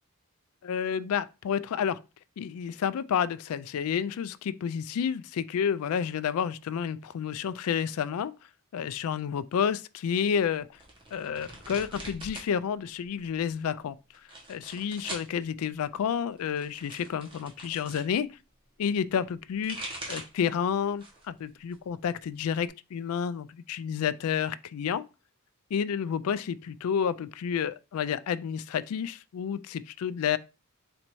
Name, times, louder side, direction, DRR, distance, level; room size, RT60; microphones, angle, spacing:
voice 1, 0.6-2.0 2.4-8.3 8.7-10.8 11.1-14.0 14.5-18.3 18.8-19.8 20.1-25.0 25.7-30.4, left 7 dB, 75° left, 0.3 m, -30 dB
sound 1, 10.8-12.5 12.8-13.5 14.1-15.3 16.3-18.1 19.3-20.4 20.9-21.3 21.7-22.7, right 1 dB, 20° right, 1.1 m, -42 dB
4.3 x 2.7 x 4.4 m
head